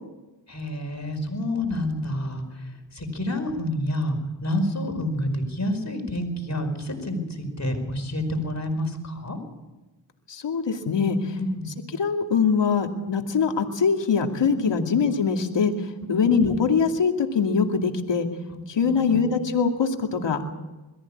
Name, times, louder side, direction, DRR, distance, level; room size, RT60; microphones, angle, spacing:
voice 1, 0.5-9.4 11.4-11.7 14.5-14.9 16.1-16.3 18.8-19.3, left 1 dB, 35° left, 4 dB, 4.9 m, -29 dB
voice 2, 10.3-11.4 11.9-15.7 16.1-18.3 18.7-20.5, left 5 dB, 70° left, 4 dB, 2.6 m, -23 dB
22.5 x 14.5 x 8.7 m, 1.1 s
cardioid pair, 65°, 44 cm